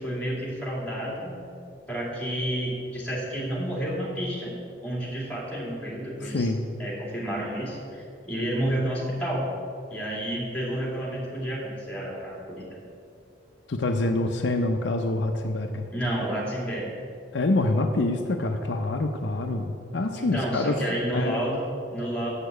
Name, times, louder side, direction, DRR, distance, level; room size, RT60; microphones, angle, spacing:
voice 1, 0.0-1.4 1.9-4.5 4.8-6.5 6.8-9.4 9.9-12.8 15.9-16.9 20.2-22.3, right 1 dB, 5° left, -5 dB, 2.4 m, -30 dB
voice 2, 6.2-6.6 13.7-15.9 17.3-20.8 21.1-21.4, left 2 dB, 60° left, 4 dB, 0.5 m, -26 dB
7.3 x 6.7 x 8.0 m, 2.5 s
head